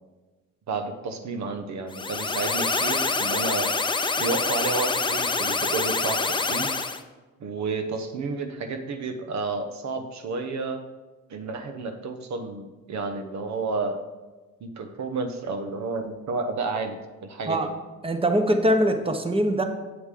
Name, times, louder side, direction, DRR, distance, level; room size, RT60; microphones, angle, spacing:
voice 1, 0.7-3.7 4.2-6.7 7.4-10.8 11.3-14.0 14.6-17.7, right 4 dB, 65° right, 7 dB, 1.1 m, -31 dB
sound 1, 1.9-7.0, left 3 dB, 15° left, 0.5 m, -26 dB
voice 2, 18.0-19.6, right 1 dB, 20° right, 6 dB, 1.1 m, -22 dB
8.0 x 7.9 x 3.8 m, 1.2 s
cardioid pair, 90°, 30 cm